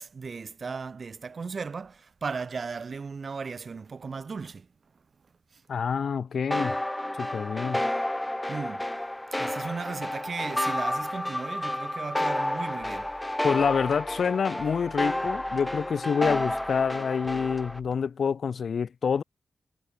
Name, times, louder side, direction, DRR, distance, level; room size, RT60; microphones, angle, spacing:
voice 1, 0.0-2.0 2.2-4.6 8.5-8.8 9.4-13.1, right 5 dB, 45° right, 2.3 m, -36 dB
voice 2, 5.7-6.8 7.2-7.8 13.4-19.2, left 6 dB, 60° left, 0.4 m, -27 dB
sound 1, 6.5-17.8, left 1 dB, 10° left, 0.6 m, -30 dB
sound 2, 12.8-18.0, right 1 dB, 10° right, 6.8 m, -51 dB
wide cardioid pair, 120°, 0 cm